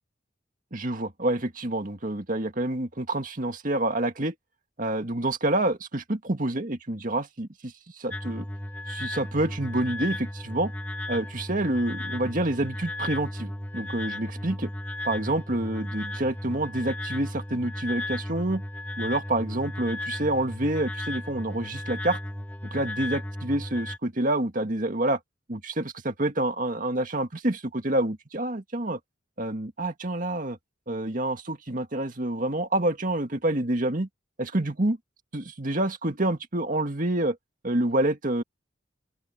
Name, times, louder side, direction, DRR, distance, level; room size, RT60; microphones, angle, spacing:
voice 1, 0.7-4.3 4.8-8.5 8.9-10.7 11.1-14.7 15.0-18.6 19.0-22.2 22.7-25.2 25.5-29.0 29.4-30.6 30.9-34.1 34.4-35.0 35.3-37.4 37.6-38.4, right 1 dB, 45° right, 2.0 m, -27 dB
sound 1, 8.1-24.0, left 1 dB, 10° left, 1.3 m, -35 dB
open air
head